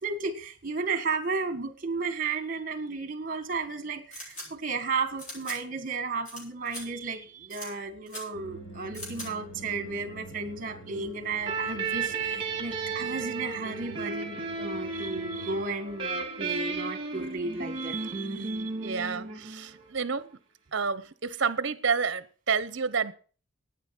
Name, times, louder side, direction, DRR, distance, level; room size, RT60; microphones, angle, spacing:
voice 1, 0.0-19.1, right 4 dB, 40° right, 1.7 m, -34 dB
sound 1, 4.1-4.5 5.2-5.6 6.2-6.4 6.7-6.8 7.5-7.7 8.1-8.2 8.9-9.3, left 1 dB, 35° left, 7.9 m, -40 dB
sound 2, 8.3-15.7, right 2 dB, 80° left, 3.2 m, -46 dB
sound 3, 11.4-19.9, right 4 dB, 25° right, 3.1 m, -34 dB
voice 2, 18.8-20.3 20.7-23.1, right 5 dB, 55° right, 0.8 m, -29 dB
12.0 x 9.6 x 6.0 m
head